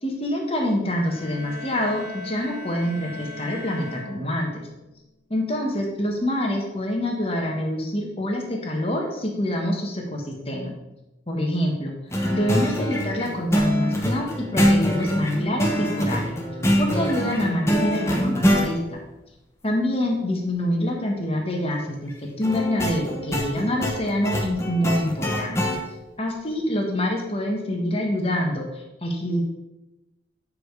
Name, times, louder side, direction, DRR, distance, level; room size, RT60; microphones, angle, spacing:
voice 1, 0.0-4.6 5.3-10.7 11.3-11.9 12.3-16.3 16.8-19.0 19.6-22.1 22.4-25.6 26.2-29.4, left 1 dB, 30° left, 0 dB, 1.6 m, -26 dB
sound 1, 0.9-4.8, left 2 dB, 35° right, 3.4 m, -39 dB
sound 2, 12.1-18.7 22.4-25.8, equal, 15° left, 1.1 m, -24 dB
8.9 x 5.1 x 4.9 m, 0.99 s
head